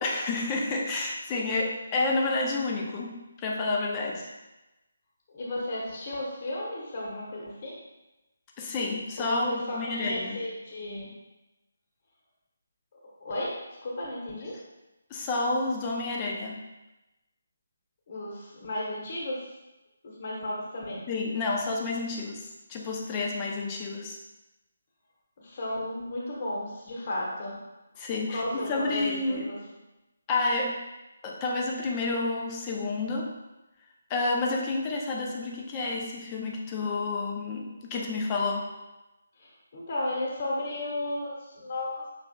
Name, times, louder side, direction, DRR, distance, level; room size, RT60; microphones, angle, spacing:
voice 1, 0.0-4.3 8.6-10.4 15.1-16.6 21.1-24.2 28.0-29.5 30.3-30.8 31.2-33.4 34.1-38.7, left 3 dB, 20° left, -1 dB, 0.7 m, -30 dB
voice 2, 5.3-7.8 9.2-11.1 13.2-13.5 13.8-14.5 18.1-19.4 20.0-21.0 25.4-27.6 28.3-29.6 39.4-42.0, left 1 dB, 45° left, -4 dB, 1.2 m, -34 dB
6.4 x 3.3 x 2.3 m, 1.0 s
figure-of-eight pair, 150°, 0 cm